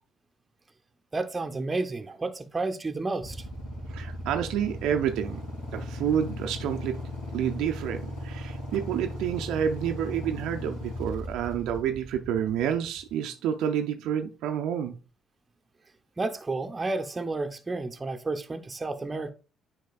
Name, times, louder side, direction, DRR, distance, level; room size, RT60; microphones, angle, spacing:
voice 1, 1.1-3.4 16.2-19.3, right 3 dB, 30° right, 0.7 m, -31 dB
Motorcycle / Idling, 3.2-13.1, equal, 85° left, 3.1 m, -37 dB
voice 2, 3.9-5.4 5.7-7.0 7.3-14.9, right 9 dB, 70° right, 0.4 m, -29 dB
9.2 x 4.7 x 2.3 m
hypercardioid pair, 50°, 0 cm